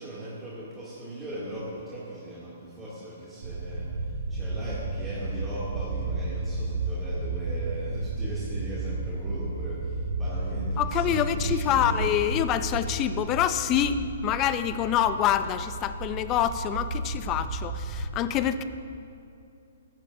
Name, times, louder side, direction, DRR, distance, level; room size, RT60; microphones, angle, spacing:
voice 1, 0.0-12.1, right 1 dB, 10° right, -11 dB, 2.7 m, -39 dB
sound 1, 3.4-18.1, right 2 dB, 70° right, 1.7 m, -32 dB
voice 2, 10.8-18.6, left 10 dB, 25° left, 11 dB, 0.5 m, -26 dB
19.5 x 10.5 x 2.8 m, 2.5 s
hypercardioid pair, 145°, 0 cm